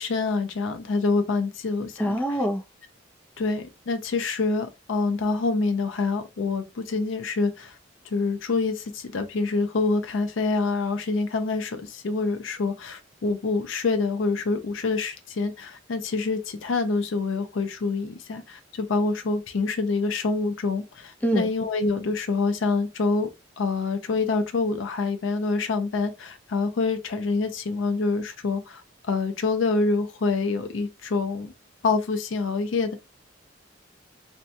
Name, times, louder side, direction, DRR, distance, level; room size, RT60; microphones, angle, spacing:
voice 1, 0.0-2.4 3.4-7.8 8.1-23.3 23.6-31.5 31.8-33.0, left 3 dB, 75° left, 0.5 m, -26 dB
voice 2, 2.0-2.6 21.2-21.5, equal, 10° left, 0.4 m, -24 dB
2.7 x 2.1 x 2.5 m
head